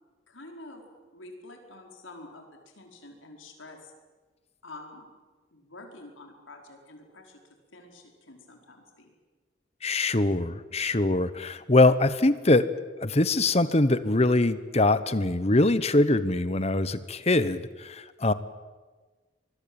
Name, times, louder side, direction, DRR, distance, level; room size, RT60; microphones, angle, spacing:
voice 1, 0.3-0.8 1.1-3.9 4.6-5.1 5.5-7.4 7.7-9.1, left 2 dB, 90° left, 2 dB, 4.9 m, -47 dB
voice 2, 9.8-12.7 13.0-18.3, left 2 dB, 35° left, 14 dB, 1.1 m, -23 dB
25.0 x 21.5 x 8.9 m, 1.3 s
head